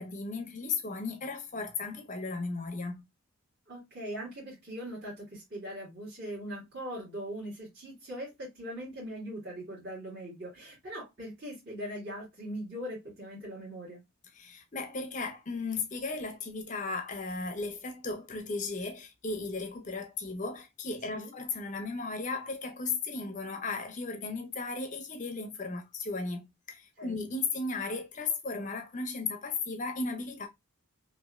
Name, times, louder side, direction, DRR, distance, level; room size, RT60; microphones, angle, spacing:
voice 1, 0.0-3.0 14.3-30.5, left 3 dB, 35° left, 0.5 m, -35 dB
voice 2, 3.7-14.0 21.1-21.3 27.0-27.1, equal, 45° right, 1.7 m, -41 dB
3.1 x 2.5 x 2.3 m
head